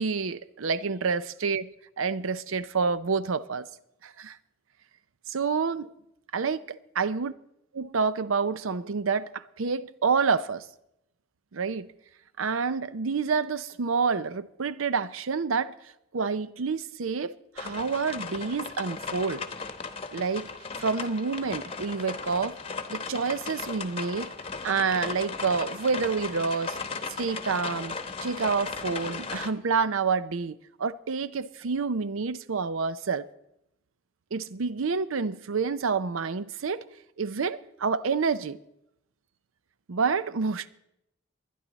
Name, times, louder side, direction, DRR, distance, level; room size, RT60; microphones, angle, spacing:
voice 1, 0.0-1.7 2.0-3.7 4.0-4.4 5.3-5.9 6.3-7.3 7.7-10.6 11.5-11.9 12.4-15.7 16.1-19.4 20.1-20.5 20.8-22.6 22.9-24.3 24.6-26.8 27.2-28.0 28.2-33.3 34.3-36.8 37.2-38.6 39.9-40.7, right 5 dB, 80° right, 0.6 m, -28 dB
sound 1, 17.6-29.5, left 4 dB, 30° left, 0.9 m, -36 dB
21.5 x 10.0 x 4.0 m
head